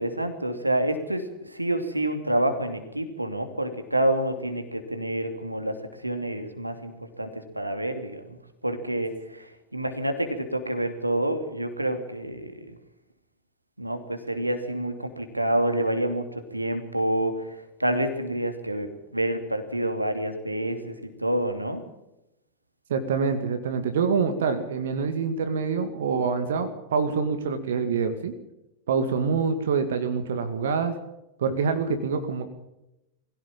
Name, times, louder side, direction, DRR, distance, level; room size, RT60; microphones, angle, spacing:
voice 1, 0.0-5.7 6.0-6.9 7.2-12.8 13.8-20.9 21.2-21.8, right 1 dB, 85° right, 7 dB, 2.7 m, -28 dB
voice 2, 22.9-28.3 28.9-31.0 31.4-32.4, right 5 dB, 60° right, 8 dB, 2.2 m, -26 dB
22.0 x 16.5 x 7.4 m, 0.88 s
figure-of-eight pair, 90°, 0 cm